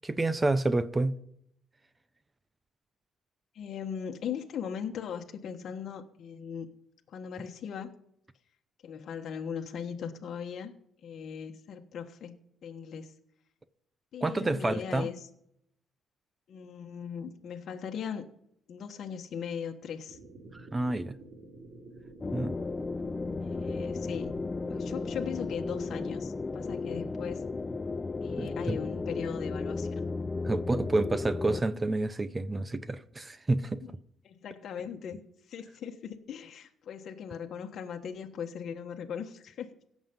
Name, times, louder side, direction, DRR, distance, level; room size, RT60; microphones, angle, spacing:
voice 1, 0.0-1.1 14.2-15.1 20.5-21.2 22.3-22.6 23.3-23.4 28.4-28.8 30.4-33.8, right 2 dB, 20° right, 0.7 m, -29 dB
voice 2, 3.5-6.7 7.1-7.9 8.8-10.7 11.0-13.1 14.1-15.3 16.5-18.3 18.7-20.2 23.4-24.3 24.7-27.5 28.2-30.0 33.8-33.9 34.2-35.2 35.5-39.7, left 7 dB, 60° left, 1.3 m, -39 dB
sound 1, 20.1-26.2, right 3 dB, 60° right, 2.7 m, -50 dB
sound 2, 22.2-31.6, left 3 dB, 25° left, 0.4 m, -34 dB
17.0 x 7.4 x 5.3 m
cardioid pair, 110°, 0 cm